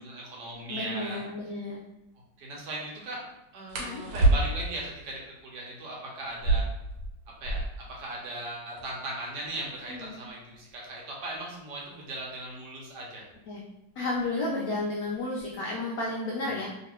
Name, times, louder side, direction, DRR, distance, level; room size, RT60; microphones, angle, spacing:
voice 1, 0.0-1.2 2.4-3.2 3.5-6.6 7.4-7.6 7.9-13.2, right 2 dB, 65° right, -3 dB, 1.3 m, -38 dB
sound 1, 0.5-0.6 1.0-1.2 3.7-4.8 6.3-7.9 8.2-8.3 8.5-9.1 9.7-12.3 13.3-13.6 14.0-14.5 14.8-15.5, right 2 dB, 90° right, 1.5 m, -29 dB
voice 2, 0.7-1.8 3.8-4.0 9.9-10.2 13.5-13.6 14.0-16.7, left 2 dB, 80° left, -3 dB, 0.8 m, -32 dB
3.1 x 2.9 x 3.0 m, 0.89 s
omnidirectional pair, 2.2 m